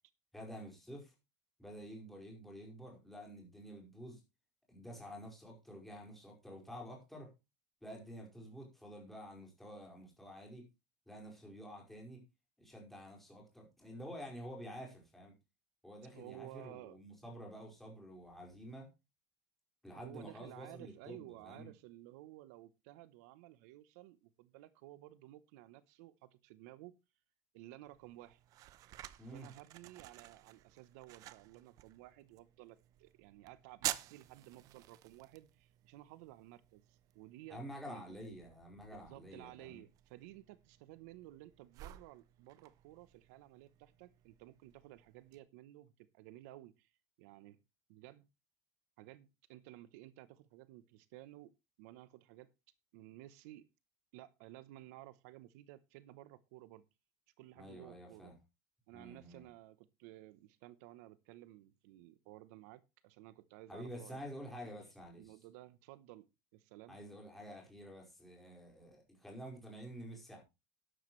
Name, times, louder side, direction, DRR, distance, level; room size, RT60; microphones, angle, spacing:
voice 1, 0.3-1.1 1.6-4.2 4.7-7.3 7.8-10.6 11.1-12.2 12.6-15.3 15.8-18.9 19.8-21.7 29.2-29.5 37.5-39.8 57.5-58.3 58.9-59.4 63.7-65.3 66.9-70.4, equal, ahead, 5.1 m, -49 dB
voice 2, 16.1-17.0 19.9-26.9 27.5-28.4 29.3-37.6 37.9-38.1 38.8-46.9 47.2-47.6 47.9-48.3 49.0-51.5 51.8-52.5 52.9-53.7 54.1-56.9 57.4-58.3 58.9-64.2 65.2-66.3 66.5-67.0, right 16 dB, 75° right, 0.9 m, -55 dB
sound 1, 27.8-45.4, right 14 dB, 45° right, 0.7 m, -50 dB
12.0 x 11.5 x 3.2 m
cardioid pair, 160°, 9 cm